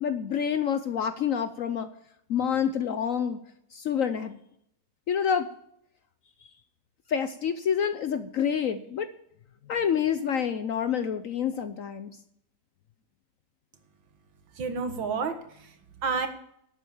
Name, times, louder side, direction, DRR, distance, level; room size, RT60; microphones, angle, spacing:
voice 1, 0.0-1.9 2.3-3.4 3.7-4.4 5.1-5.5 7.1-9.1 9.7-12.1, left 8 dB, 65° left, 11 dB, 0.8 m, -27 dB
voice 2, 14.5-16.3, right 5 dB, 90° right, 7 dB, 2.2 m, -31 dB
12.0 x 8.3 x 7.0 m, 0.72 s
omnidirectional pair, 2.0 m